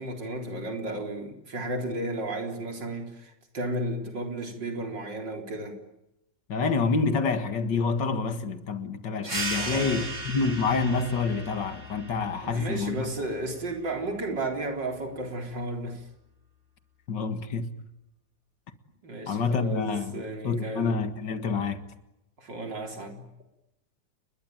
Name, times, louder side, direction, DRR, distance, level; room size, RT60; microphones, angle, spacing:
voice 1, 0.0-5.8 9.5-10.1 12.4-16.1 19.0-20.9 22.4-23.3, right 2 dB, 80° right, 4.6 m, -33 dB
voice 2, 6.5-13.1 17.1-17.7 19.3-21.9, left 4 dB, 80° left, 2.4 m, -27 dB
sound 1, 9.2-14.4, right 2 dB, 40° right, 3.5 m, -37 dB
29.5 x 21.5 x 9.3 m
omnidirectional pair, 1.9 m